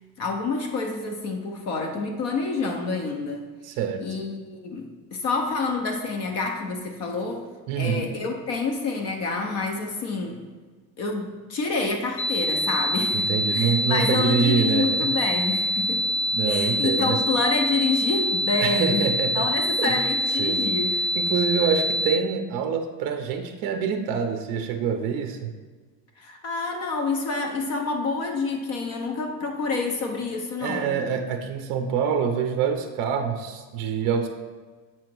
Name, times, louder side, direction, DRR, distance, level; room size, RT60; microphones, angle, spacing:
voice 1, 0.2-3.5 4.0-7.5 7.8-10.4 11.0-16.1 16.5-21.0 26.2-31.0, left 3 dB, 35° left, 3 dB, 0.5 m, -28 dB
voice 2, 3.6-4.0 7.7-8.1 13.1-15.1 16.3-17.2 18.6-19.5 19.8-20.1 20.4-20.7 21.2-25.5 30.6-34.3, right 7 dB, 50° right, 6 dB, 0.6 m, -26 dB
sound 1, 12.2-22.2, equal, 55° left, 1.0 m, -25 dB
7.3 x 2.9 x 6.0 m, 1.4 s
cardioid pair, 180°, 45 cm